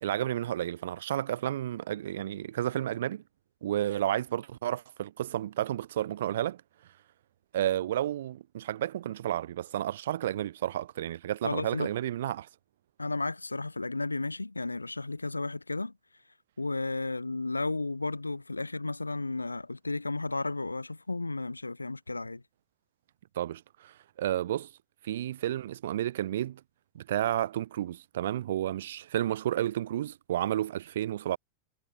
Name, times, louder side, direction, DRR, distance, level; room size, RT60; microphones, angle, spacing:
voice 1, 0.0-3.2 3.6-6.6 7.5-12.5 23.3-24.7 25.0-26.6 26.9-31.4, right 12 dB, 60° right, 1.6 m, -31 dB
voice 2, 11.4-11.9 13.0-15.9 16.6-22.4, left 2 dB, 80° left, 1.4 m, -33 dB
figure-of-eight pair, 90°, 0 cm